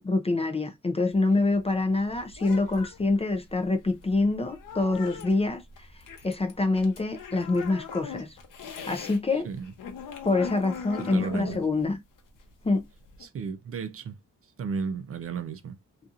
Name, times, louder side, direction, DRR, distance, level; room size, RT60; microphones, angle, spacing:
voice 1, 0.0-5.6 6.2-8.4 8.8-9.5 10.2-12.0 12.6-12.8, left 3 dB, 20° left, 0.4 m, -26 dB
sound 1, 1.1-9.2 9.5-13.3, left 6 dB, 85° left, 0.8 m, -41 dB
voice 2, 11.0-11.6 13.2-14.2 14.6-15.8, right 5 dB, 45° right, 0.4 m, -34 dB
2.7 x 2.4 x 2.4 m
cardioid pair, 105°, 32 cm